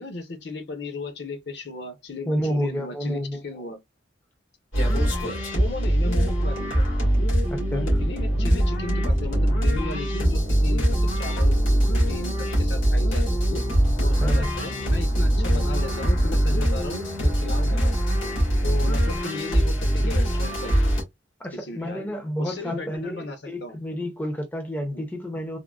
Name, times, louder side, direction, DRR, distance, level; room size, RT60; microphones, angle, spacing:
voice 1, 0.0-3.8 5.5-7.0 7.7-13.6 14.0-17.9 18.6-20.9 21.6-23.8 24.9-25.0, left 2 dB, 60° left, 0.7 m, -36 dB
voice 2, 2.3-3.7 7.5-7.8 14.2-14.5 21.4-25.6, equal, 10° left, 0.5 m, -30 dB
sound 1, 4.7-21.0, equal, 85° left, 1.6 m, -22 dB
3.6 x 2.1 x 2.3 m
head